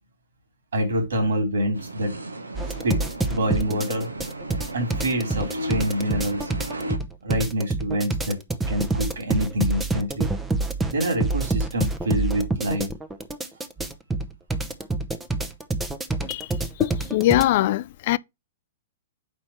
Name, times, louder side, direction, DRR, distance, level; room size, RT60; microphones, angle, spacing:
voice 1, 0.7-2.1 2.8-3.0 3.3-4.1 4.7-6.5 7.2-8.4 8.7-10.3 10.9-12.9, equal, 70° right, 2.9 m, -26 dB
sound 1, 1.7-7.0, right 1 dB, 85° right, 1.1 m, -35 dB
sound 2, 2.5-17.4, right 2 dB, 10° right, 0.8 m, -27 dB
voice 2, 16.8-18.2, left 15 dB, 50° left, 0.3 m, -22 dB
4.5 x 4.3 x 5.4 m
figure-of-eight pair, 110°, 0 cm